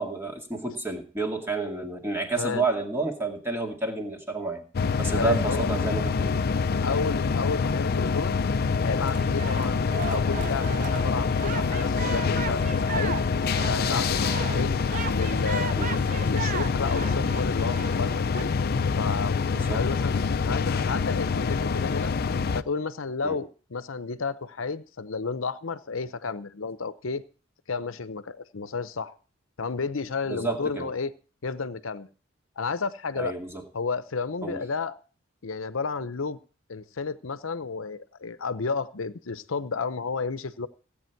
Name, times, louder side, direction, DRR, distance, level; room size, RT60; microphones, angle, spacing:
voice 1, 0.0-4.6 5.0-6.4 15.8-15.9 19.5-19.8 23.2-23.4 30.3-30.9 33.2-33.6 34.4-34.6, right 3 dB, 10° right, 2 dB, 2.2 m, -30 dB
voice 2, 2.4-2.7 5.1-5.7 6.8-8.4 8.8-13.2 13.7-14.7 15.1-18.5 19.0-20.2 20.5-22.1 22.5-27.2 27.7-29.1 29.6-31.1 31.4-32.1 32.6-33.4 33.7-35.0 35.4-36.4 36.7-40.7, left 4 dB, 80° left, 13 dB, 0.8 m, -32 dB
sound 1, 4.7-22.6, left 5 dB, 50° left, 0.5 m, -26 dB
sound 2, 9.0-18.4, right 6 dB, 40° right, 0.6 m, -37 dB
16.5 x 8.6 x 4.6 m, 0.39 s
head